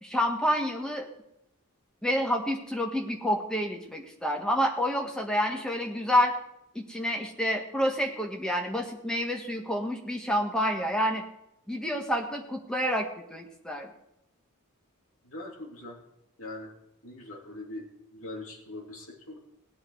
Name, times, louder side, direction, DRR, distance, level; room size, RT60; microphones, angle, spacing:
voice 1, 0.0-1.1 2.0-6.3 6.7-11.2 11.7-13.9, equal, 5° left, 2 dB, 1.5 m, -28 dB
voice 2, 15.3-15.9 16.4-16.7 17.0-17.8 18.1-19.4, left 2 dB, 70° left, 0 dB, 2.7 m, -41 dB
18.5 x 9.0 x 4.7 m, 0.82 s
head